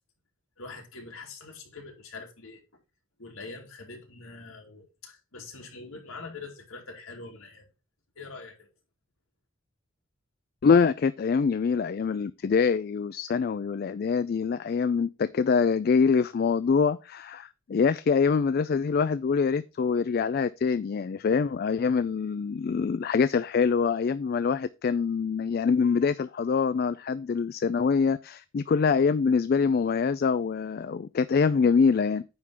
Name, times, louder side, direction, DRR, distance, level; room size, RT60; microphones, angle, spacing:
voice 1, 0.6-2.6 3.2-7.7 8.2-8.7, left 3 dB, 85° left, 2.5 m, -44 dB
voice 2, 10.6-32.2, left 5 dB, 45° left, 0.3 m, -25 dB
9.5 x 3.8 x 5.6 m
head